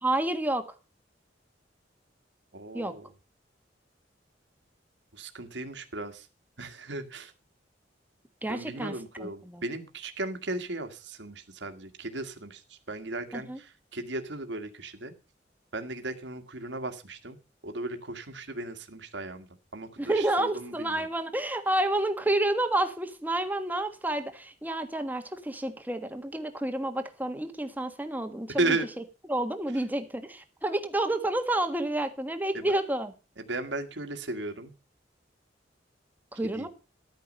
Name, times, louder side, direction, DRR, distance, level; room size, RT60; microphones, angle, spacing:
voice 1, 0.0-0.6 2.7-2.9 8.4-8.9 9.2-9.6 13.3-13.6 20.0-28.8 29.3-33.1 36.3-36.7, right 1 dB, 10° right, 7 dB, 1.6 m, -29 dB
voice 2, 2.5-3.0 5.1-6.3 6.6-7.3 8.5-15.1 15.7-17.4 17.6-19.5 19.7-21.1 28.5-28.9 32.5-32.8 33.4-34.7 36.5-36.7, right 2 dB, 80° right, 6 dB, 1.9 m, -35 dB
13.0 x 9.5 x 5.4 m, 0.31 s
head